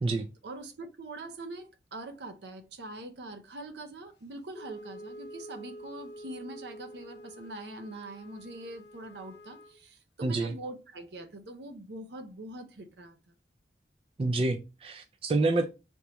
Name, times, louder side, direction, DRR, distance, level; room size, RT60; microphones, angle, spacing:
voice 1, 0.4-13.2, right 2 dB, 75° right, 0.6 m, -43 dB
Wind instrument woodwind instrument, 4.5-9.8, equal, 75° left, 0.6 m, -47 dB
voice 2, 10.2-10.5 14.2-15.7, right 2 dB, 30° right, 0.3 m, -28 dB
3.5 x 3.0 x 2.9 m
head